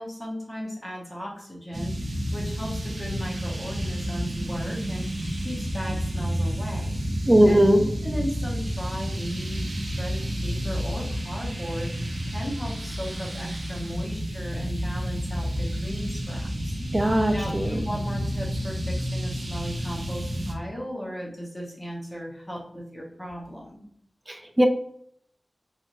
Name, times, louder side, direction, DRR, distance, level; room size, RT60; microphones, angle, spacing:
voice 1, 0.0-7.1 7.4-16.8 17.3-23.9, equal, 20° left, -3 dB, 1.0 m, -36 dB
sound 1, 1.7-20.5, equal, 70° right, 0.6 m, -30 dB
voice 2, 7.3-7.8 16.9-17.7 24.3-24.7, right 1 dB, 20° right, 5 dB, 0.4 m, -19 dB
3.0 x 2.6 x 2.6 m, 0.66 s
wide cardioid pair, 75°, 0 cm